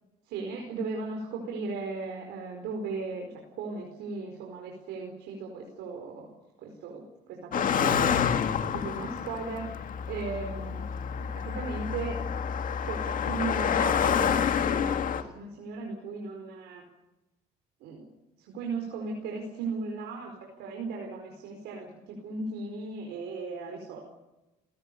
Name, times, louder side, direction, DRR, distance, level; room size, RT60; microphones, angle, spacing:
voice 1, 0.2-6.3 6.6-10.9 11.3-12.2 12.8-16.8 17.8-18.1 18.4-24.0, right 4 dB, 85° right, 2 dB, 4.6 m, -37 dB
Car passing by, 7.5-15.2, left 7 dB, 55° left, 2.0 m, -28 dB
30.0 x 18.0 x 7.0 m, 1.0 s
cardioid pair, 110°, 17 cm